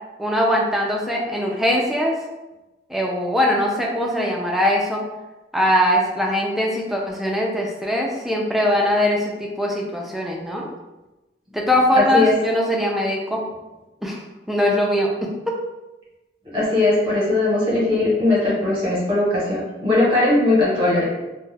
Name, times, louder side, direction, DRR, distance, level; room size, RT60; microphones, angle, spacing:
voice 1, 0.2-2.1 2.9-5.0 5.5-10.7 11.5-13.4 14.0-15.1, left 1 dB, ahead, -2 dB, 0.3 m, -21 dB
voice 2, 16.5-21.1, left 2 dB, 30° right, -6 dB, 1.0 m, -19 dB
2.3 x 2.1 x 3.2 m, 1.0 s
head